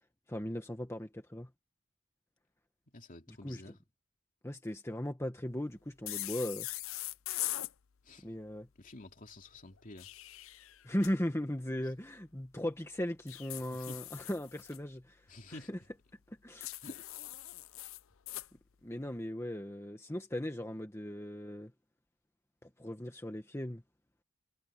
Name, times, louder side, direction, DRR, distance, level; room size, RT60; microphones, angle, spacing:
voice 1, 0.3-1.5 3.3-3.7 4.4-6.7 8.2-8.7 10.8-15.3 15.7-15.8 16.3-16.7 18.8-21.7 22.6-23.8, left 1 dB, 10° left, 1.5 m, -38 dB
voice 2, 2.9-3.8 8.0-8.2 8.8-10.1 13.7-14.0 15.3-15.7 16.8-17.1, left 2 dB, 40° left, 2.7 m, -50 dB
sound 1, 6.1-7.7 9.8-11.1 13.3-14.8 16.6-18.5, left 16 dB, 65° left, 0.6 m, -41 dB
head